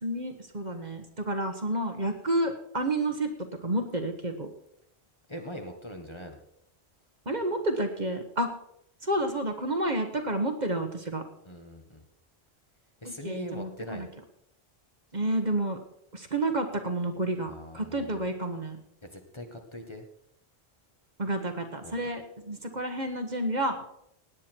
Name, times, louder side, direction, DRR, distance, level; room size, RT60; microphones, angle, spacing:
voice 1, 0.0-3.3 3.6-4.5 7.2-8.5 9.0-11.2 13.0-14.1 15.1-15.8 16.1-18.8 21.2-23.8, right 1 dB, 45° right, 6 dB, 1.5 m, -30 dB
voice 2, 5.3-6.4 11.4-12.0 13.0-14.1 17.5-18.1 19.0-20.0 21.8-22.0, equal, 25° left, 4 dB, 1.5 m, -42 dB
17.5 x 9.7 x 4.5 m, 0.76 s
omnidirectional pair, 1.1 m